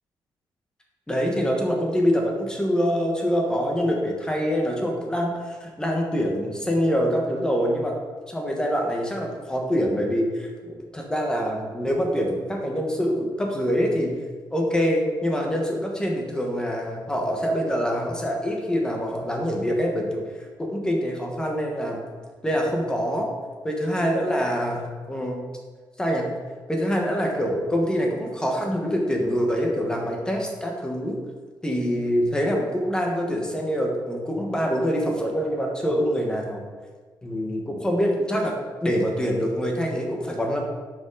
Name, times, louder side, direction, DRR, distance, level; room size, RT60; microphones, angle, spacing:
voice 1, 1.1-7.9 8.3-14.1 14.5-20.2 20.6-22.0 22.4-23.3 23.6-25.4 26.0-26.3 26.7-31.2 31.6-36.7 37.2-38.5 38.8-40.6, equal, 10° left, 0 dB, 1.3 m, -25 dB
9.4 x 5.2 x 3.9 m, 1.4 s
wide cardioid pair, 150°, 9 cm